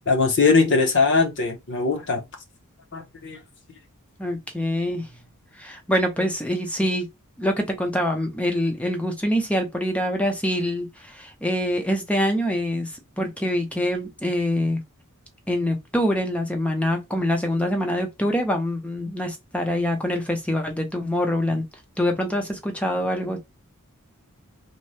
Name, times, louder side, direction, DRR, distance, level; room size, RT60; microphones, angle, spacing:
voice 1, 0.1-2.2 2.9-3.4, left 4 dB, 55° left, 0.7 m, -20 dB
voice 2, 4.2-5.1 5.6-7.1 7.4-12.9 13.2-14.8 15.5-21.6 22.0-23.4, equal, 5° left, 0.5 m, -25 dB
2.7 x 2.1 x 3.2 m
head